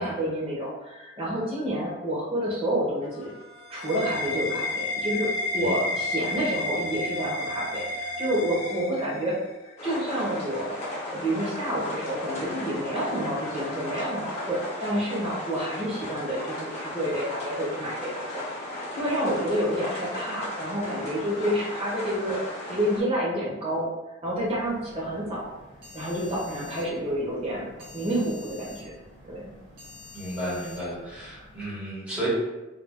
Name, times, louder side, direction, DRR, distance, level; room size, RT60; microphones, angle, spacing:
voice 1, 0.0-3.3 3.7-10.7 11.1-18.3 18.7-23.9 24.2-25.5 25.9-28.9 29.3-29.5, equal, 30° right, -5 dB, 0.9 m, -29 dB
sound 1, 3.0-9.5, left 2 dB, 70° left, 0.4 m, -31 dB
sound 2, 9.8-23.0, left 1 dB, 30° left, 0.8 m, -36 dB
sound 3, 24.3-31.6, left 2 dB, 60° right, 1.4 m, -48 dB
voice 2, 30.1-32.3, right 1 dB, 5° right, -10 dB, 1.4 m, -33 dB
3.4 x 2.5 x 2.2 m, 1.0 s
head